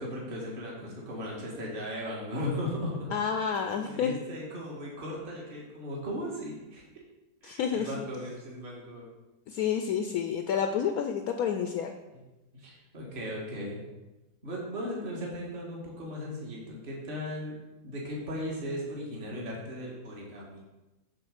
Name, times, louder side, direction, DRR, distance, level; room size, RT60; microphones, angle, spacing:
voice 1, 0.0-3.1 3.8-6.8 7.4-9.1 12.5-13.8 14.4-17.5 17.8-20.6, left 1 dB, 35° right, -3 dB, 1.8 m, -37 dB
voice 2, 3.1-4.1 7.4-7.9 9.5-11.9, left 7 dB, 70° left, 6 dB, 0.9 m, -29 dB
7.5 x 3.7 x 6.4 m, 1.0 s
omnidirectional pair, 1.7 m